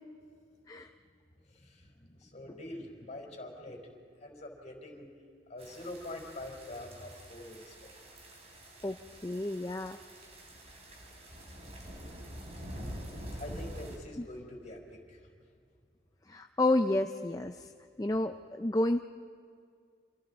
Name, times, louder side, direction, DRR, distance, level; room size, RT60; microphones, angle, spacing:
voice 1, 1.5-3.8 4.2-5.1 5.5-7.7 13.3-15.2, left 1 dB, 40° left, 0 dB, 4.4 m, -45 dB
sound 1, 5.6-14.0, equal, 35° right, 3.3 m, -46 dB
voice 2, 9.2-10.0 14.2-14.3 16.3-17.7 18.0-19.0, left 2 dB, 20° left, 6 dB, 0.5 m, -30 dB
28.5 x 26.5 x 4.1 m, 2.2 s
head